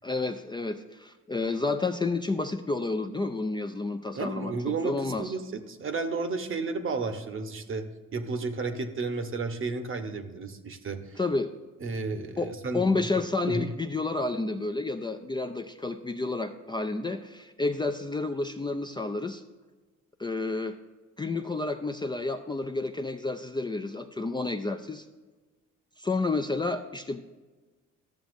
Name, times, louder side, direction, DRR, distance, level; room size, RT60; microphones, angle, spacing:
voice 1, 0.0-4.5 4.8-5.3 11.2-11.5 12.4-19.4 20.2-20.8 21.2-25.1 26.0-27.2, left 3 dB, 15° left, 6 dB, 0.4 m, -30 dB
voice 2, 4.1-11.2 11.8-13.1 13.5-13.7, right 4 dB, 45° right, 8 dB, 0.9 m, -33 dB
13.0 x 7.0 x 2.6 m, 1.2 s
cardioid pair, 90°, 30 cm